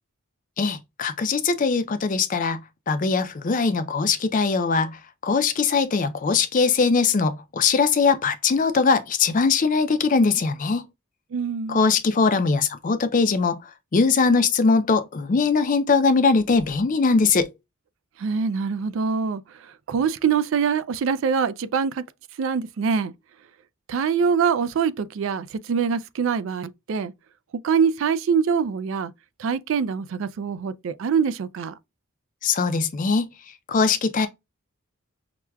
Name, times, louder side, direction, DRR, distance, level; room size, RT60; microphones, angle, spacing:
voice 1, 0.6-2.6 2.9-5.0 5.2-10.8 11.7-13.6 13.9-17.5 32.4-33.3 33.7-34.3, left 4 dB, 35° left, 0.4 m, -21 dB
voice 2, 11.3-11.9 18.2-19.4 19.9-22.0 22.4-23.1 23.9-27.1 27.6-29.1 29.4-31.8, right 6 dB, 60° right, 0.3 m, -24 dB
5.8 x 2.2 x 2.2 m
head